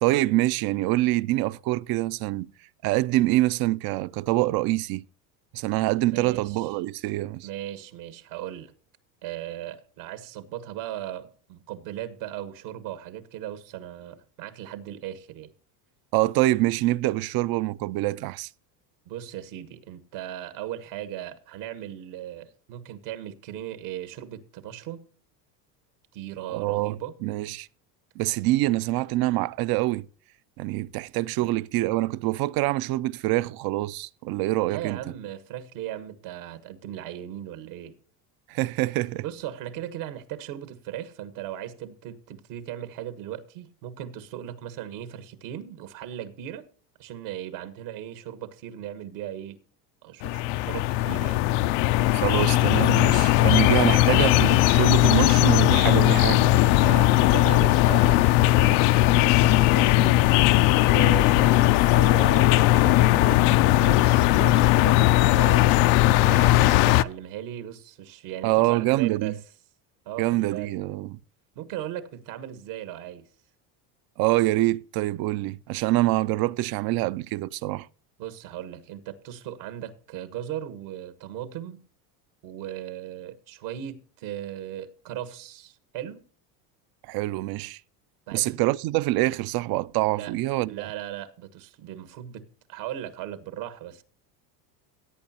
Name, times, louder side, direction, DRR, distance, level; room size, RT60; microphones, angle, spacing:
voice 1, 0.0-2.5 2.8-5.0 5.5-7.5 16.1-18.5 26.5-27.0 27.2-27.7 28.2-30.1 30.6-35.0 38.5-39.2 52.1-56.5 68.4-69.3 70.2-71.2 74.2-77.9 87.1-87.8 88.3-90.9, right 17 dB, 50° right, 0.5 m, -25 dB
voice 2, 6.1-6.7 7.4-8.7 9.2-15.5 19.0-25.0 26.1-27.1 31.4-31.5 34.7-37.9 39.2-46.7 47.0-49.6 50.0-51.4 56.8-60.2 60.8-65.1 65.3-65.8 66.2-69.4 70.0-70.7 71.5-73.2 78.2-81.8 82.4-86.2 88.3-88.6 90.1-90.3 90.7-94.0, right 11 dB, 75° right, 1.6 m, -37 dB
sound 1, 50.2-67.0, left 16 dB, 60° left, 0.6 m, -19 dB
17.5 x 8.5 x 2.8 m
supercardioid pair, 95°, 49 cm